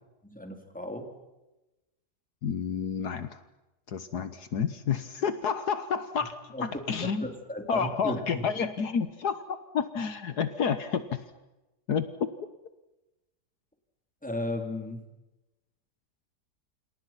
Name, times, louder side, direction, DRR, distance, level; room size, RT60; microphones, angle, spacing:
voice 1, 0.2-1.1 6.5-6.7 7.0-8.2 14.2-15.1, left 1 dB, 5° left, 5 dB, 3.7 m, -35 dB
voice 2, 2.4-3.4 3.9-7.3 7.7-11.2 11.9-12.1, left 6 dB, 70° left, 11 dB, 1.9 m, -30 dB
29.0 x 27.5 x 5.9 m, 1.0 s
omnidirectional pair, 1.8 m